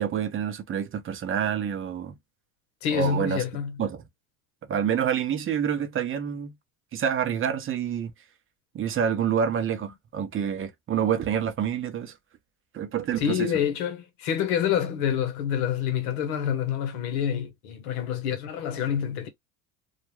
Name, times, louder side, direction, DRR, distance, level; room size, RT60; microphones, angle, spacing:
voice 1, 0.0-2.1 2.9-3.4 3.8-4.0 4.7-6.5 6.9-8.1 8.7-12.1 12.7-13.5, right 8 dB, 30° right, 0.6 m, -27 dB
voice 2, 2.8-3.8 13.2-19.3, left 8 dB, 85° left, 0.9 m, -27 dB
2.4 x 2.2 x 3.0 m
supercardioid pair, 90°, 42 cm